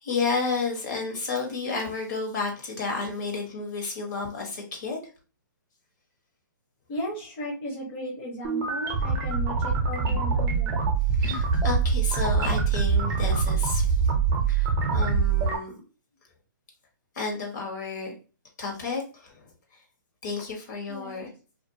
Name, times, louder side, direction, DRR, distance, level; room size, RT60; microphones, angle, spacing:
voice 1, 0.0-5.0 11.2-14.1 14.5-15.7 17.1-18.1 18.6-19.3 20.2-21.3, left 4 dB, 60° left, 0 dB, 1.1 m, -31 dB
voice 2, 6.9-10.8 20.9-21.3, left 1 dB, 35° left, -4 dB, 0.8 m, -36 dB
sound 1, 8.4-15.6, right 5 dB, 25° right, 0.6 m, -24 dB
2.5 x 2.3 x 2.7 m, 0.35 s
hypercardioid pair, 145°, 11 cm